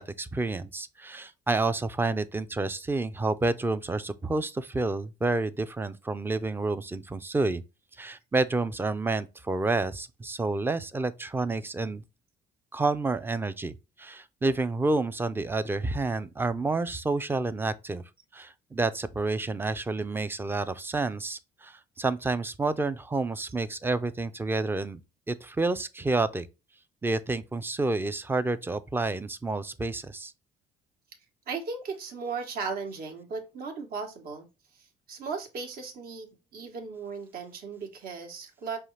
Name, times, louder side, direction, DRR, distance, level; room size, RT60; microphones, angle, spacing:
voice 1, 0.0-7.6 8.0-12.0 12.7-18.0 18.3-25.0 25.3-26.5 27.0-30.3, right 3 dB, 15° right, 0.4 m, -29 dB
voice 2, 31.5-34.5 34.7-38.8, right 5 dB, 60° right, 1.2 m, -36 dB
5.5 x 2.4 x 3.1 m
cardioid pair, 110°, 17 cm